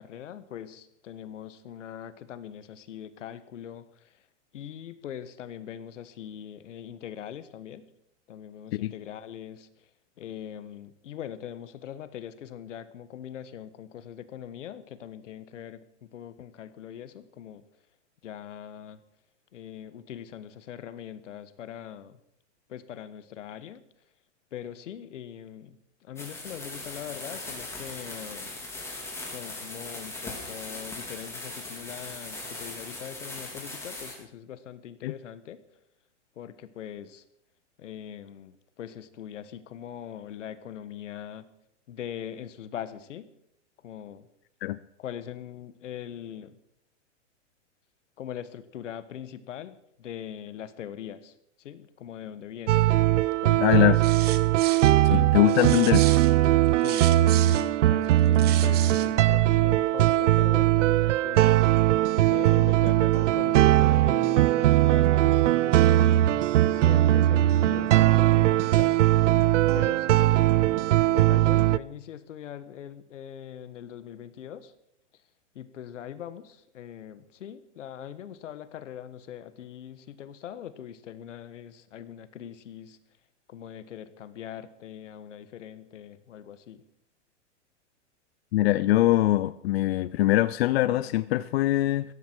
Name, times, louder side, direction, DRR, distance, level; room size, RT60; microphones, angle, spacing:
voice 1, 0.0-4.3 4.5-7.9 8.3-9.9 10.2-17.6 18.2-19.0 19.5-22.2 22.7-23.8 24.5-28.6 29.2-35.6 36.3-37.2 37.8-41.5 41.9-43.3 43.8-44.3 45.0-46.6 48.2-52.9 53.4-54.0 55.0-55.3 56.7-61.6 62.3-66.4 66.7-69.0 69.7-70.8 71.1-74.7 75.1-75.2 75.5-83.0 83.5-86.8, left 10 dB, 85° left, 13 dB, 1.5 m, -41 dB
sound 1, 26.2-34.1, left 2 dB, 5° left, 4.0 m, -39 dB
sound 2, 52.7-71.8, right 14 dB, 80° right, 0.6 m, -20 dB
voice 2, 53.6-54.0 55.1-56.1 88.5-92.0, left 15 dB, 55° left, 15 dB, 0.6 m, -22 dB
sound 3, 53.9-55.0 55.5-57.7 58.2-59.1, right 13 dB, 25° right, 1.0 m, -35 dB
16.5 x 14.5 x 4.6 m, 0.77 s
hypercardioid pair, 145°, 36 cm